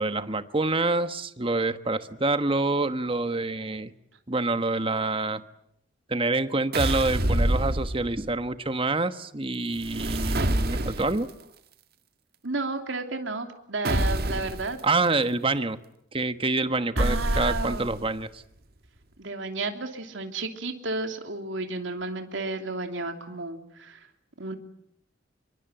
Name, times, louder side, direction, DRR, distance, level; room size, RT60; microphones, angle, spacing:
voice 1, 0.0-3.9 4.3-5.4 6.1-11.3 14.8-15.8 16.1-18.4, right 3 dB, 30° right, 11 dB, 1.2 m, -27 dB
sound 1, 6.7-8.3 9.8-11.3 13.8-14.7 17.0-18.1, right 1 dB, 55° right, 1.8 m, -26 dB
voice 2, 12.4-14.8 17.0-17.9 19.2-24.1 24.4-24.6, right 3 dB, 80° right, 5 dB, 3.0 m, -32 dB
26.5 x 23.5 x 8.9 m, 0.74 s
head